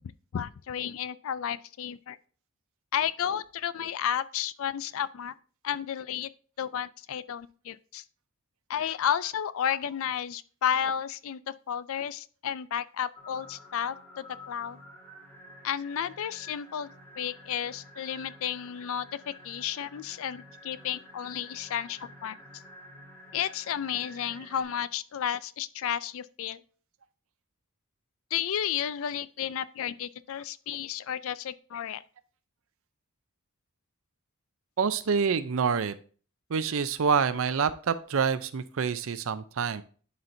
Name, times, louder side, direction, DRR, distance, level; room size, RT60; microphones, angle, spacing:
voice 1, 0.3-2.2 2.9-5.3 5.6-6.3 6.6-8.0 8.7-11.4 11.7-14.8 15.6-16.9 17.2-22.4 23.3-26.6 28.3-32.0, left 9 dB, 65° left, 0.4 m, -32 dB
sound 1, 13.1-24.6, left 1 dB, 10° left, 1.7 m, -50 dB
voice 2, 34.8-35.9 36.5-39.8, right 6 dB, 65° right, 0.5 m, -27 dB
11.0 x 4.4 x 2.6 m
head